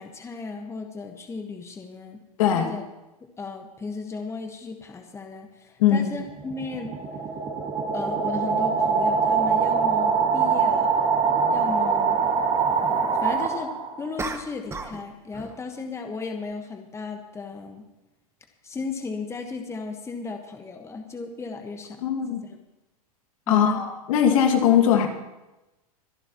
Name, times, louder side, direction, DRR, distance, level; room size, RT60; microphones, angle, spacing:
voice 1, 0.0-2.2 2.5-2.8 3.4-6.9 7.9-11.0 11.5-12.2 13.2-17.9 18.6-22.0 22.3-22.6 23.5-23.8, left 4 dB, 15° left, 5 dB, 1.4 m, -35 dB
sound 1, 6.3-14.1, right 5 dB, 30° right, 2.4 m, -23 dB
sound 2, 10.1-10.2 14.2-15.1 15.3-15.7, right 4 dB, 15° right, 1.1 m, -34 dB
voice 2, 22.0-22.4 23.5-25.1, left 9 dB, 65° left, 4 dB, 2.2 m, -20 dB
24.5 x 11.0 x 3.0 m, 1.0 s
hypercardioid pair, 105°, 19 cm